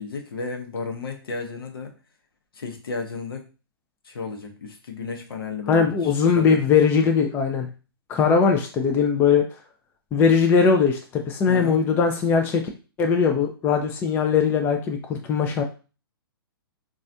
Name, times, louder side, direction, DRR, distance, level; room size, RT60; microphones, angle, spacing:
voice 1, 0.0-1.9 2.5-3.4 4.0-6.6 11.5-11.8, left 4 dB, 65° left, 4 dB, 0.8 m, -33 dB
voice 2, 5.7-7.7 8.1-9.5 10.1-12.6 13.0-15.6, left 6 dB, 15° left, 3 dB, 0.4 m, -20 dB
4.0 x 2.4 x 2.5 m, 0.33 s
figure-of-eight pair, 115°, 13 cm